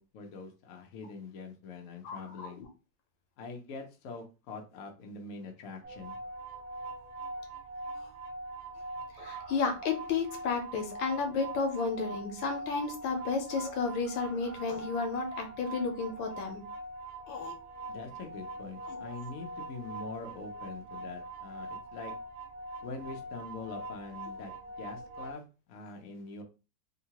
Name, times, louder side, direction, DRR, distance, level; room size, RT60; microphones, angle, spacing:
voice 1, 0.0-2.6 3.4-6.2 17.9-22.1 22.8-24.5 24.8-26.4, left 4 dB, 60° left, 3 dB, 0.9 m, -44 dB
voice 2, 2.0-2.7 9.2-16.6 17.3-17.5 18.9-19.0, left 4 dB, 85° left, 5 dB, 1.4 m, -32 dB
sound 1, 5.8-25.3, right 2 dB, 90° right, 1.6 m, -42 dB
3.7 x 2.1 x 2.9 m, 0.31 s
omnidirectional pair, 2.0 m